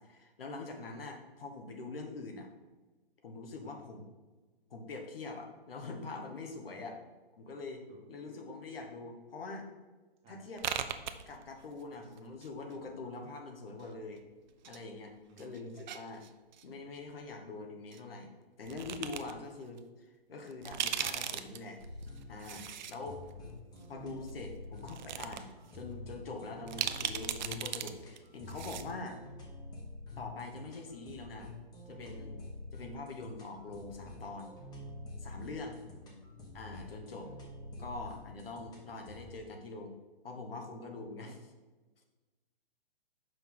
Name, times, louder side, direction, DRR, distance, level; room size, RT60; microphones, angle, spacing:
voice 1, 0.0-2.5 3.2-4.1 4.7-7.0 7.4-9.7 10.3-10.8 11.3-14.2 14.6-16.2 16.6-18.3 18.6-21.8 22.3-23.2 23.9-29.2 30.2-31.5 31.9-32.4 32.7-34.5 35.2-35.8 36.5-37.3 37.8-39.9 40.2-41.4, left 3 dB, 70° left, 3 dB, 1.2 m, -44 dB
voice 2, 6.7-7.0 7.9-8.0 10.2-10.4 15.3-15.5 23.3-23.9 35.8-36.2 41.2-41.3, right 1 dB, 20° right, 0 dB, 1.2 m, -58 dB
sound 1, 10.6-11.8 12.1-13.0 13.8-14.8 15.1-16.6 17.9-18.0 18.7-19.3 19.8-19.9 20.5-22.9 23.3-23.4 24.3-24.4 24.8-25.4 25.7-25.8 26.7-27.9 28.2-28.3 28.5-28.9, right 9 dB, 50° right, 0.5 m, -38 dB
sound 2, 21.8-39.4, left 2 dB, 15° left, 1.1 m, -48 dB
5.8 x 5.5 x 3.7 m, 1.2 s
hypercardioid pair, 140°, 30 cm